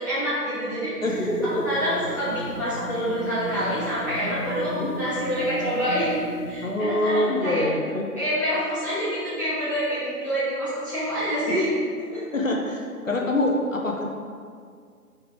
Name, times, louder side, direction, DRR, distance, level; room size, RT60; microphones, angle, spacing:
voice 1, 0.0-0.9 1.6-6.2 6.5-7.6 8.2-11.7 12.0-12.4, equal, 10° right, -15 dB, 1.3 m, -27 dB
voice 2, 1.0-1.5 4.7-4.9 6.6-8.0 12.3-14.1, left 1 dB, 55° left, -1 dB, 0.8 m, -25 dB
sound 1, 1.0-6.8, right 2 dB, 30° left, 1.2 m, -36 dB
4.7 x 4.7 x 4.6 m, 2.1 s
figure-of-eight pair, 160°, 47 cm